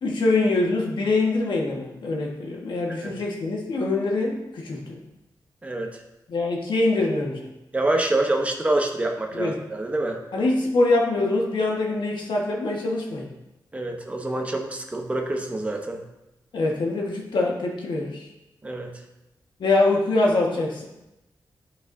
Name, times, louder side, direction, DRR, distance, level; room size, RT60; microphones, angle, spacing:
voice 1, 0.0-5.0 6.3-7.5 9.3-9.6 10.3-13.3 16.5-18.3 19.6-20.8, left 2 dB, 85° left, -1 dB, 1.4 m, -24 dB
voice 2, 7.7-10.2 13.7-16.0 18.6-18.9, right 2 dB, 15° right, 2 dB, 0.9 m, -26 dB
10.5 x 5.9 x 2.7 m, 0.95 s
wide cardioid pair, 150°, 8 cm